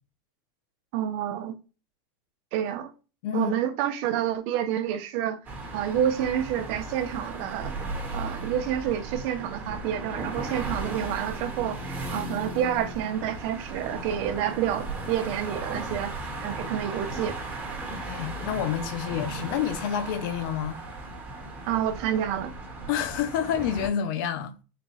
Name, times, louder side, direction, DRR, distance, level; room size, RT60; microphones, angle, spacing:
voice 1, 0.9-1.5 2.5-2.9 3.3-5.4 5.7-7.7 8.1-16.2 16.4-17.4 21.7-22.5, right 10 dB, 60° right, 0.8 m, -28 dB
voice 2, 3.2-3.6 18.0-20.8 22.9-24.6, left 9 dB, 70° left, 0.8 m, -28 dB
sound 1, 5.4-23.9, right 2 dB, 15° right, 1.3 m, -36 dB
4.3 x 2.3 x 4.1 m
supercardioid pair, 145°, 12 cm